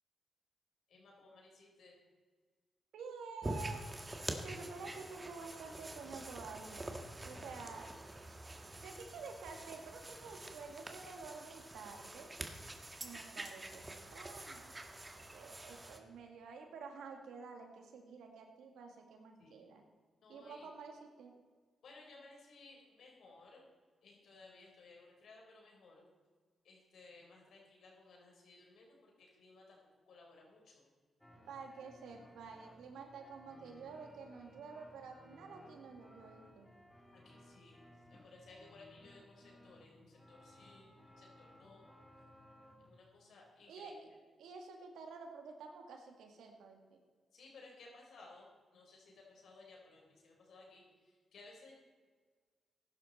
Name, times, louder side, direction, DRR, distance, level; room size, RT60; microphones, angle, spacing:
voice 1, 0.9-1.9 19.4-19.7 20.2-20.7 21.8-23.7 24.0-26.1 26.6-29.8 30.1-30.9 37.1-41.9 42.8-44.0 47.3-51.8, left 3 dB, 75° left, -1 dB, 4.5 m, -59 dB
voice 2, 2.9-3.9 4.4-6.9 7.2-7.9 8.8-12.3 13.0-14.7 15.2-19.8 20.3-21.3 31.5-36.7 43.7-44.0 44.4-47.0, right 4 dB, 90° right, 3 dB, 2.0 m, -50 dB
sound 1, 3.4-16.0, right 1 dB, 25° right, 1.7 m, -46 dB
sound 2, 31.2-43.0, left 1 dB, 10° left, 2.7 m, -61 dB
15.0 x 11.5 x 4.3 m, 1.5 s
cardioid pair, 65°, 0 cm